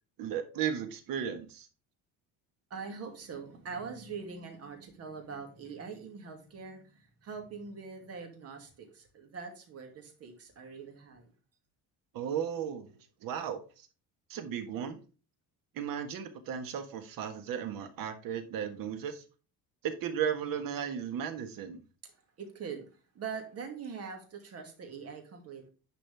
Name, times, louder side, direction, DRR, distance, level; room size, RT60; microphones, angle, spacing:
voice 1, 0.2-1.7 12.1-12.9 13.2-13.9 14.3-15.0 15.7-19.2 19.8-21.8, right 8 dB, 60° right, 9 dB, 1.5 m, -35 dB
voice 2, 2.7-11.3 22.0-22.1 22.4-22.9 23.1-25.7, right 5 dB, 40° right, 4 dB, 2.3 m, -43 dB
10.5 x 5.0 x 3.5 m, 0.35 s
cardioid pair, 170°, 37 cm